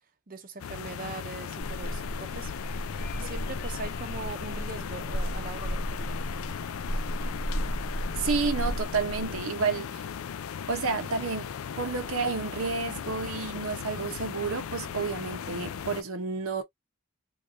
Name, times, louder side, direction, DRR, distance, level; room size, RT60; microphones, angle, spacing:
voice 1, 0.3-2.5 2.9-6.2, right 3 dB, 40° right, 0.7 m, -41 dB
sound 1, 0.6-16.0, left 7 dB, 85° left, 0.4 m, -37 dB
sound 2, 1.6-9.4, equal, 40° left, 0.7 m, -34 dB
voice 2, 8.2-10.0 10.7-11.5 11.8-16.6, right 4 dB, 80° right, 0.8 m, -30 dB
3.3 x 2.9 x 2.5 m
head